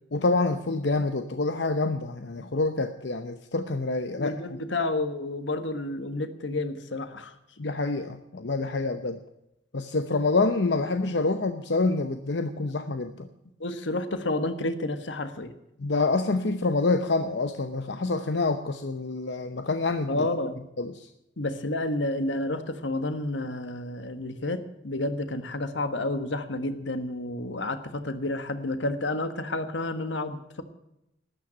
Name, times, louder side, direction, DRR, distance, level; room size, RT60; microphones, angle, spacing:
voice 1, 0.1-4.3 7.6-9.2 9.7-13.3 15.8-20.3 20.8-21.1, left 3 dB, 70° left, 8 dB, 0.8 m, -27 dB
voice 2, 4.1-7.3 13.6-15.5 20.1-20.6 21.4-30.6, left 2 dB, 85° left, 10 dB, 1.4 m, -30 dB
13.0 x 9.2 x 9.9 m, 0.85 s
head